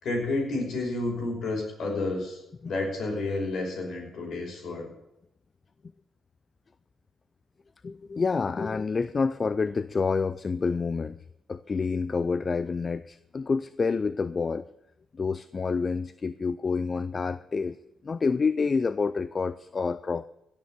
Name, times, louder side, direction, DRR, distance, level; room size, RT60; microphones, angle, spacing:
voice 1, 0.0-4.9, left 2 dB, 60° left, 0 dB, 5.6 m, -30 dB
voice 2, 7.8-11.2 11.5-14.7 15.1-17.8 18.0-20.3, left 4 dB, 40° left, 16 dB, 0.4 m, -28 dB
16.5 x 6.8 x 8.1 m, 0.84 s
hypercardioid pair, 40°, 0 cm